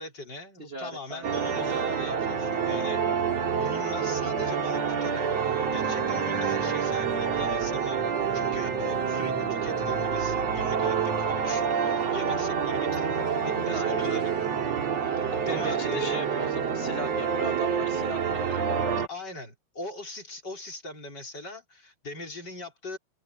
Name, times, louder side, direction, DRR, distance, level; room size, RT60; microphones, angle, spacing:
voice 1, 0.0-14.5 15.3-16.2 19.1-23.0, left 2 dB, 35° left, 5.3 m, -40 dB
voice 2, 0.6-1.4 13.7-14.4 15.3-18.6, right 2 dB, 25° right, 1.4 m, -38 dB
sound 1, 1.2-19.1, right 6 dB, 60° right, 3.5 m, -27 dB
omnidirectional pair, 3.3 m